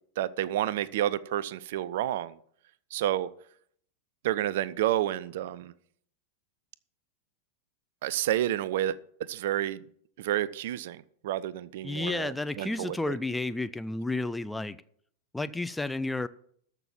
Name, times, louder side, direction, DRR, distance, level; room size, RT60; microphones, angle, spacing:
voice 1, 0.2-2.3 2.9-3.3 4.2-5.7 8.0-9.8 10.2-13.1, right 12 dB, 55° right, 0.5 m, -30 dB
voice 2, 11.8-14.8 15.3-16.3, left 2 dB, 5° left, 0.5 m, -31 dB
13.5 x 6.0 x 7.3 m
figure-of-eight pair, 90°, 0 cm